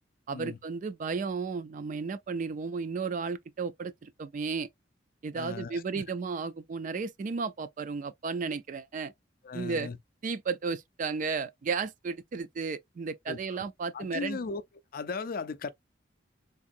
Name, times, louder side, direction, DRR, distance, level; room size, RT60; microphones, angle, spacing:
voice 1, 0.3-4.7 5.2-9.1 9.5-9.9 10.2-14.4, right 5 dB, 45° right, 0.3 m, -34 dB
voice 2, 5.3-6.0 9.4-10.0 13.3-13.6 13.9-14.6 14.9-15.7, left 4 dB, 50° left, 0.4 m, -37 dB
3.6 x 2.5 x 2.6 m
head